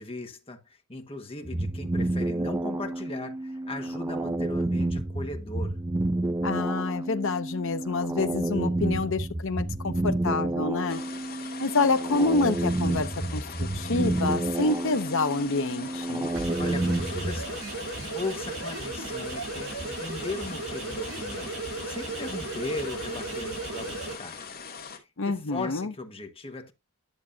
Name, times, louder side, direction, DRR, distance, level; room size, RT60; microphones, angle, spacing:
voice 1, 0.0-5.8 16.6-17.6 18.1-21.5 21.8-24.5 24.9-26.7, left 2 dB, 25° left, 1.4 m, -38 dB
sound 1, 1.4-17.5, right 1 dB, 15° right, 0.4 m, -30 dB
voice 2, 6.4-11.0 11.6-16.3 25.2-25.9, left 3 dB, 60° left, 0.7 m, -27 dB
sound 2, 10.9-25.0, left 6 dB, 45° left, 2.2 m, -42 dB
sound 3, 16.3-24.1, right 3 dB, 70° right, 6.5 m, -35 dB
11.0 x 7.1 x 2.7 m
head